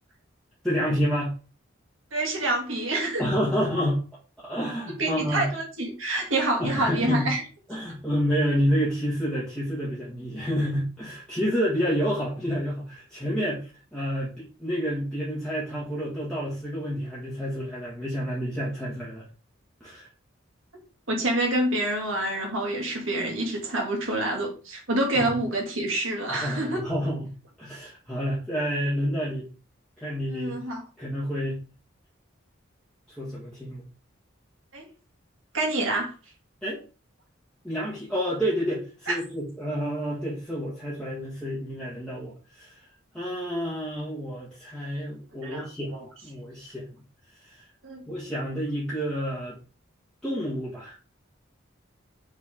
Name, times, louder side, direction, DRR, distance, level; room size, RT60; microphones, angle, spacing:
voice 1, 0.6-1.4 3.2-4.0 4.4-5.5 6.6-7.3 7.7-19.2 19.8-20.1 25.1-25.4 26.3-27.3 27.6-29.5 30.0-30.6 31.0-31.6 33.2-33.8 36.6-36.8 37.6-42.9 43.1-46.0 46.2-46.9 47.4-47.6 48.1-49.6 50.2-51.0, equal, 5° left, -8 dB, 1.8 m, -29 dB
voice 2, 2.1-3.3 5.0-7.4 21.1-26.8 30.3-30.8 34.7-34.8 35.5-36.1 39.1-39.2 45.4-45.7 45.9-46.0 47.8-48.0, right 1 dB, 80° right, 1 dB, 2.3 m, -27 dB
7.2 x 3.8 x 3.8 m, 0.35 s
head